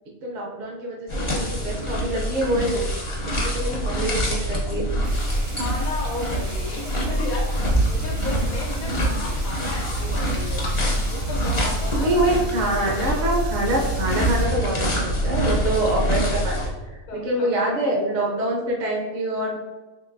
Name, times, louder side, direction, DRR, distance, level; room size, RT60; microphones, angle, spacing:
voice 1, 0.2-2.9 3.4-4.9 8.9-9.0 12.0-16.6 16.9-19.6, right 1 dB, 50° right, -2 dB, 0.6 m, -25 dB
sound 1, 1.1-16.7, equal, 35° left, 0.5 m, -25 dB
sound 2, 5.0-14.5, right 2 dB, 65° right, 1.1 m, -42 dB
voice 2, 5.6-10.7 11.1-12.4 12.8-12.9 17.1-17.8, left 3 dB, 75° left, -2 dB, 1.2 m, -34 dB
3.8 x 3.0 x 2.5 m, 1.2 s
omnidirectional pair, 1.4 m